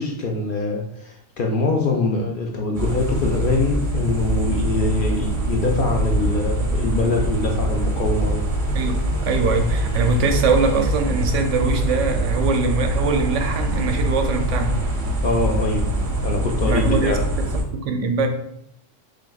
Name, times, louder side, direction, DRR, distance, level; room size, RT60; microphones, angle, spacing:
voice 1, 0.0-8.4 15.2-15.9 16.2-17.2, left 3 dB, 60° left, 0 dB, 0.5 m, -23 dB
sound 1, 2.7-17.6, right 1 dB, 45° right, 0.7 m, -23 dB
voice 2, 8.7-14.7 16.7-17.2 17.7-18.3, right 4 dB, 80° right, 5 dB, 0.9 m, -22 dB
6.2 x 2.2 x 2.3 m, 0.73 s
omnidirectional pair, 1.3 m